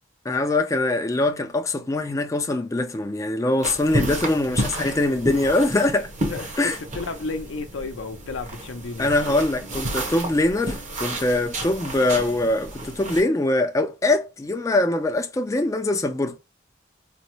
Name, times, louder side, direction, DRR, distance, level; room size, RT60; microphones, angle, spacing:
voice 1, 0.3-6.1 6.6-6.8 9.0-16.4, left 2 dB, 15° left, 0.4 m, -23 dB
sound 1, 3.6-13.2, right 1 dB, 40° right, 0.9 m, -31 dB
voice 2, 4.5-4.9 6.3-9.1, left 3 dB, 80° left, 0.6 m, -33 dB
4.0 x 2.0 x 3.0 m
head